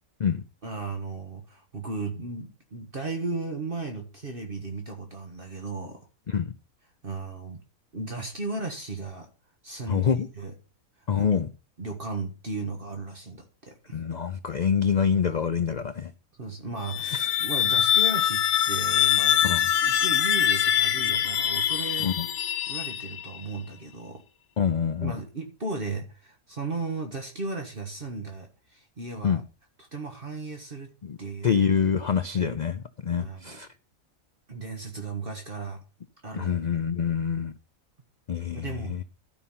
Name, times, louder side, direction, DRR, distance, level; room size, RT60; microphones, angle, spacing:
voice 1, 0.6-6.0 7.0-7.6 7.9-9.3 9.6-10.5 11.1-11.3 11.8-14.0 16.4-19.4 19.8-22.1 22.7-24.2 25.0-29.4 29.9-30.9 31.2-31.6 32.3-32.5 33.2-33.6 34.5-35.8 36.2-36.5 38.5-39.0, right 3 dB, 40° right, 1.6 m, -35 dB
voice 2, 9.9-10.3 11.1-11.5 13.9-16.1 19.4-19.7 22.0-22.3 24.6-25.2 29.2-29.4 31.0-31.2 31.4-33.7 36.3-37.5 38.3-39.0, left 7 dB, 55° left, 0.5 m, -26 dB
sound 1, 16.8-23.4, left 10 dB, 75° left, 1.1 m, -24 dB
12.5 x 5.6 x 5.6 m
omnidirectional pair, 1.4 m